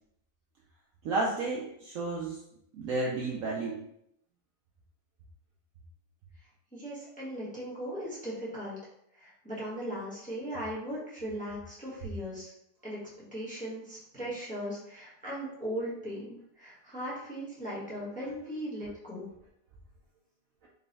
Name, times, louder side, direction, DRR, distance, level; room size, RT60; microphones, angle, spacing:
voice 1, 1.0-2.4 2.7-3.9 20.6-20.7, right 2 dB, 70° right, -2 dB, 0.8 m, -32 dB
voice 2, 6.7-8.8 9.1-12.5 12.8-13.0 13.3-19.3, equal, 5° left, -7 dB, 0.9 m, -38 dB
3.9 x 2.2 x 3.9 m, 0.76 s
omnidirectional pair, 1.8 m